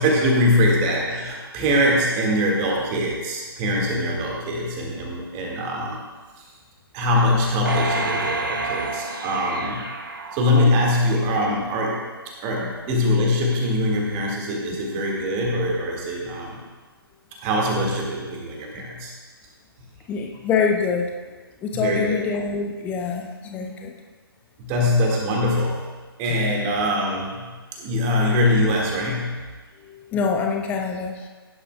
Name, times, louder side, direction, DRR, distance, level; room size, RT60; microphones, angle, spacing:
voice 1, 0.0-6.0 6.4-6.5 6.9-9.8 10.3-12.1 12.4-16.6 17.4-19.1 21.7-22.2 24.6-25.9 26.2-27.5 27.8-29.4, left 1 dB, 20° right, -1 dB, 2.0 m, -22 dB
sound 1, 7.7-11.1 11.6-11.7, right 3 dB, 55° right, 1.2 m, -29 dB
voice 2, 20.1-21.2 21.6-23.9 29.8-31.3, left 5 dB, 10° left, 3 dB, 0.7 m, -25 dB
16.5 x 10.5 x 2.4 m, 1.4 s
figure-of-eight pair, 140°, 13 cm